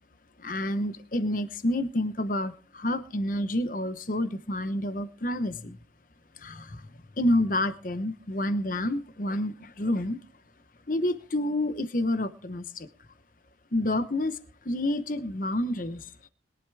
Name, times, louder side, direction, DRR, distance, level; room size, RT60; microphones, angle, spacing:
voice 1, 0.4-5.8 6.4-6.9 7.2-10.2 10.9-12.9 13.7-14.4 14.6-16.1, left 1 dB, 45° left, 12 dB, 0.9 m, -29 dB
22.0 x 11.5 x 3.4 m, 0.34 s
head